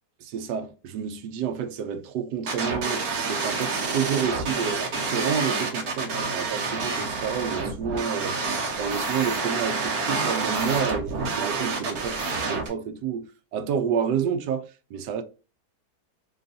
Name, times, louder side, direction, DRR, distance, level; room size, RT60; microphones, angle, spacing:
voice 1, 0.2-8.4 8.8-15.2, right 7 dB, 80° right, 1.2 m, -29 dB
tb field rain, 2.5-12.7, right 4 dB, 60° right, 1.6 m, -28 dB
3.9 x 3.8 x 2.6 m
omnidirectional pair, 1.8 m